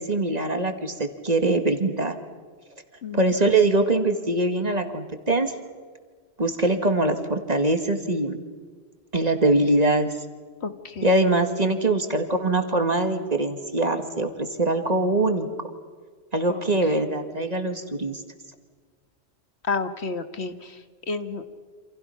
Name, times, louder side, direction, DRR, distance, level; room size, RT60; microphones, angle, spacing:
voice 1, 0.0-2.1 3.1-5.5 6.4-8.4 9.1-10.1 11.0-15.5 16.3-18.2, right 2 dB, 40° right, 7 dB, 2.0 m, -23 dB
voice 2, 10.6-11.1 16.5-16.6 19.6-20.8 21.1-21.4, left 4 dB, 75° left, 9 dB, 1.8 m, -30 dB
28.5 x 27.5 x 5.8 m, 1.5 s
omnidirectional pair, 1.1 m